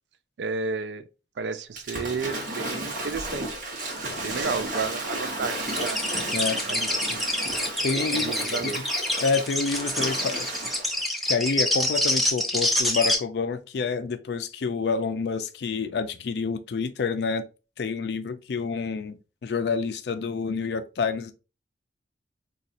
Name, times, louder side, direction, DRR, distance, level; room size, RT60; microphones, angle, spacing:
voice 1, 0.4-1.1 1.4-3.6 4.1-6.0 6.7-7.2 8.2-8.8, right 5 dB, 70° right, 0.4 m, -32 dB
Waves surf / Splash splatter, 1.8-11.0, right 1 dB, 45° right, 0.9 m, -33 dB
sound 1, 5.7-13.2, left 1 dB, ahead, 0.4 m, -26 dB
voice 2, 7.8-8.3 8.8-8.9 9.2-10.7 11.3-17.4 17.8-21.3, left 4 dB, 65° left, 0.4 m, -28 dB
4.0 x 2.4 x 2.4 m
head